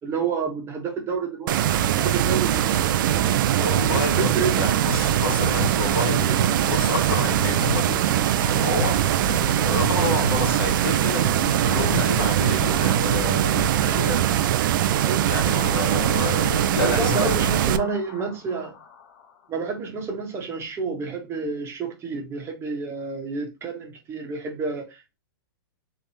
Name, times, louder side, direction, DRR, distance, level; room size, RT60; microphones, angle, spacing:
voice 1, 0.0-3.7 4.2-4.7 15.0-15.3 16.8-18.7 19.5-25.2, right 4 dB, 20° right, 1.2 m, -29 dB
sound 1, 1.5-17.8, right 11 dB, 60° right, 0.4 m, -22 dB
voice 2, 3.6-8.9 9.6-14.4 15.3-17.3, left 4 dB, 70° left, 1.6 m, -29 dB
sound 2, 4.9-19.5, left 8 dB, 50° left, 1.1 m, -43 dB
3.4 x 3.3 x 2.8 m
hypercardioid pair, 135°, 12 cm